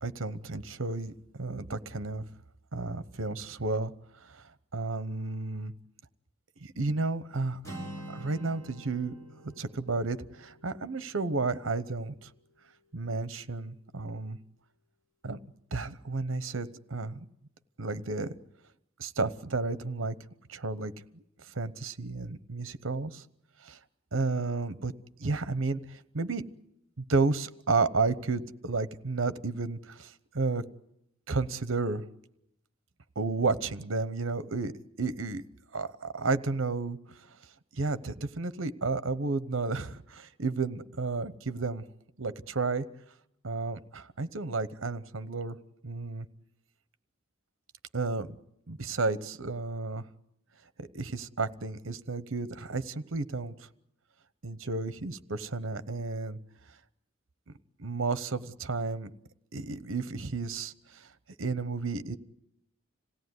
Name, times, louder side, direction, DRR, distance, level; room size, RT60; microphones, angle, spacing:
voice 1, 0.0-2.2 2.7-3.9 4.3-4.4 4.7-5.7 6.6-7.7 8.1-9.1 9.4-12.3 12.9-14.4 15.2-15.4 15.7-17.2 17.8-18.3 19.0-20.2 20.5-20.9 21.5-23.2 23.6-23.8 24.1-24.9 25.2-26.4 27.0-30.6 31.3-32.0 33.2-35.4 35.7-37.0 37.7-41.8 42.2-42.8 43.4-45.6 45.8-46.3 47.9-48.3 48.7-50.0 50.8-53.7 54.4-56.4 57.8-59.1 59.5-61.1 61.4-62.2, right 3 dB, 70° right, 14 dB, 0.9 m, -32 dB
Acoustic guitar, 7.6-11.6, right 1 dB, 15° left, 6.7 m, -46 dB
26.5 x 17.0 x 9.6 m, 0.81 s
head